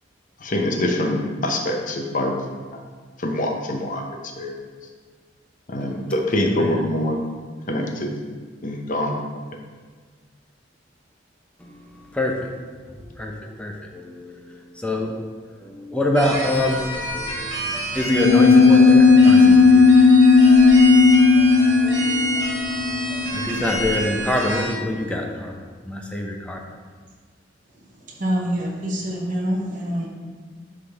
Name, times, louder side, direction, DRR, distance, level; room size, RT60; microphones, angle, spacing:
voice 1, 0.4-2.3 2.7-2.8 3.2-4.0 4.4-4.5 5.7-7.2 7.7-8.1 8.6-9.2, left 1 dB, 45° left, 2 dB, 0.8 m, -24 dB
voice 2, 5.8-6.9 11.6-12.6 12.9-15.2 15.6-20.0 20.4-26.6, left 1 dB, 5° left, 1 dB, 0.7 m, -27 dB
sound 1, 16.2-24.7, right 2 dB, 80° right, 2.0 m, -29 dB
sound 2, 18.1-24.0, left 4 dB, 65° left, 0.4 m, -14 dB
voice 3, 28.2-30.1, equal, 45° right, -2 dB, 1.1 m, -25 dB
10.0 x 3.8 x 3.4 m, 1.5 s
head